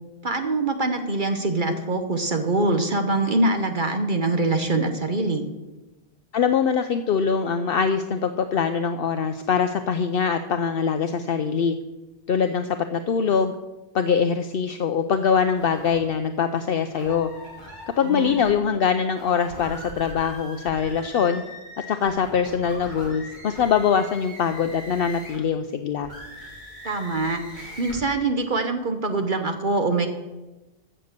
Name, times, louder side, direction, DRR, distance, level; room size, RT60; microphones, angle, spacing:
voice 1, 0.2-5.4 18.0-18.3 26.8-30.1, right 2 dB, 50° right, 6 dB, 1.1 m, -24 dB
voice 2, 6.3-11.7 12.3-13.5 13.9-17.3 18.0-21.4 21.9-26.1, left 6 dB, 65° left, 8 dB, 0.8 m, -23 dB
sound 1, 15.5-16.0 16.9-18.5 19.1-25.5 26.0-28.0, left 1 dB, 25° right, 5.1 m, -41 dB
15.0 x 6.7 x 6.7 m, 1.1 s
omnidirectional pair, 1.1 m